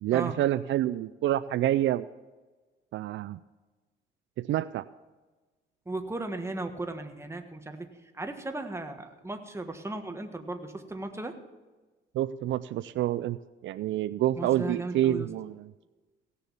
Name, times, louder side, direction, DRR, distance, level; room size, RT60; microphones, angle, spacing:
voice 1, 0.0-2.1 2.9-3.4 4.4-4.8 12.1-13.4 13.6-15.7, right 13 dB, 70° right, 14 dB, 0.4 m, -27 dB
voice 2, 5.9-7.9 8.1-11.4 14.4-15.3, right 2 dB, 15° right, 6 dB, 1.4 m, -36 dB
17.0 x 6.9 x 7.1 m, 1.3 s
cardioid pair, 90°, 20 cm